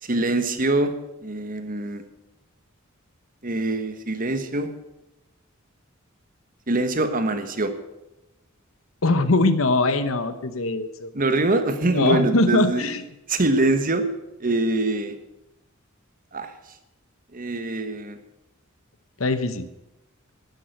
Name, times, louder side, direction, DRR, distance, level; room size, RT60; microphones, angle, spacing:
voice 1, 0.0-2.0 3.4-4.7 6.7-7.7 11.1-12.8 13.3-14.1 14.4-15.1 16.3-16.5 17.3-18.2, right 2 dB, 40° right, 8 dB, 1.4 m, -24 dB
voice 2, 9.0-11.1 11.9-13.0 19.2-19.7, left 2 dB, 75° left, 11 dB, 1.0 m, -21 dB
12.0 x 10.5 x 7.8 m, 0.96 s
head